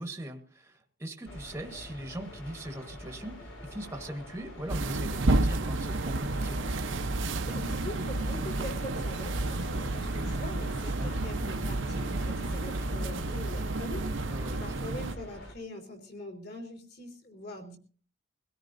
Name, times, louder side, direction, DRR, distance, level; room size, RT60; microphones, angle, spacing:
voice 1, 0.0-6.6 10.9-11.1 14.3-14.8, right 1 dB, 15° right, 5 dB, 1.2 m, -40 dB
sound 1, 1.2-15.5, left 1 dB, 80° left, 4.3 m, -46 dB
sound 2, 4.7-15.1, right 2 dB, 70° right, 0.9 m, -31 dB
voice 2, 7.5-17.8, left 1 dB, 50° left, 4 dB, 3.6 m, -43 dB
23.5 x 17.0 x 2.6 m, 0.41 s
head